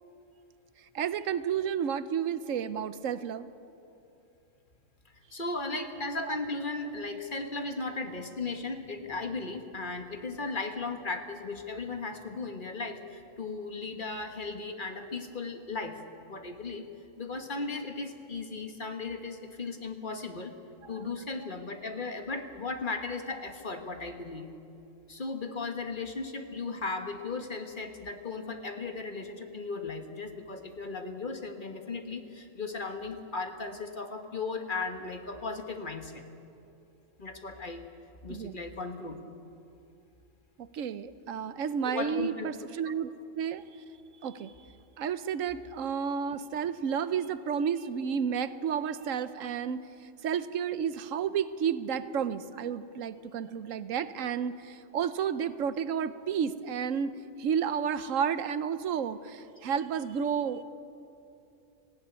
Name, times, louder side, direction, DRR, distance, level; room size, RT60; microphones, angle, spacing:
voice 1, 0.9-3.5 6.2-6.4 20.9-21.0 38.3-38.5 40.6-43.6 44.2-44.5 45.0-60.6, right 7 dB, 80° right, 13 dB, 1.1 m, -31 dB
voice 2, 5.3-16.0 16.3-16.8 17.2-20.5 20.9-24.5 25.1-36.3 37.2-37.9 38.2-39.2 41.8-42.5, left 3 dB, 40° left, 5 dB, 1.5 m, -36 dB
19.0 x 15.5 x 9.4 m, 2.7 s
omnidirectional pair, 1.3 m